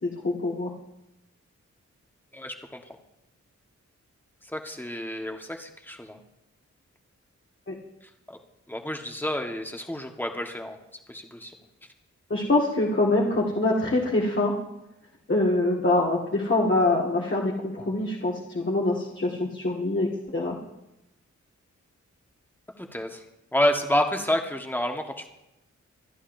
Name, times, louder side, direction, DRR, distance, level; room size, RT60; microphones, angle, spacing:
voice 1, 0.0-0.7 7.7-7.8 12.3-14.5 15.3-20.6, left 2 dB, 40° left, -3 dB, 2.0 m, -24 dB
voice 2, 2.3-2.8 4.4-6.2 8.3-8.4 8.7-10.8 11.1-11.5 22.8-23.2 23.5-25.3, left 1 dB, 5° left, 3 dB, 1.5 m, -29 dB
26.5 x 11.0 x 2.7 m, 0.91 s
wide cardioid pair, 80°, 30 cm